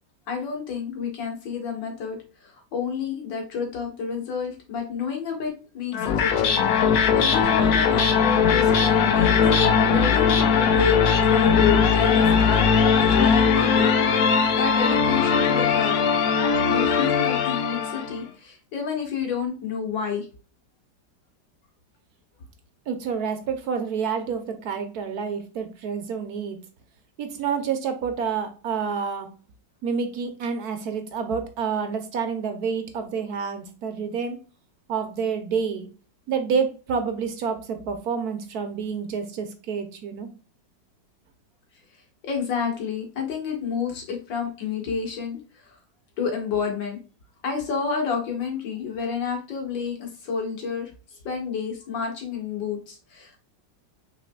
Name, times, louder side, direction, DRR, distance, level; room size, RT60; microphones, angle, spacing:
voice 1, 0.3-9.3 9.8-13.9 14.6-16.0 16.7-20.3 42.2-45.8 46.2-47.0 47.4-50.9 51.3-53.4, left 6 dB, 90° left, 2 dB, 2.1 m, -30 dB
sound 1, 5.9-18.2, left 6 dB, 65° left, 1.0 m, -20 dB
voice 2, 22.9-26.6 27.2-29.3 29.8-34.4 34.9-35.9 36.3-40.3, right 6 dB, 65° right, 7 dB, 1.2 m, -28 dB
5.8 x 4.1 x 2.2 m, 0.35 s
omnidirectional pair, 1.9 m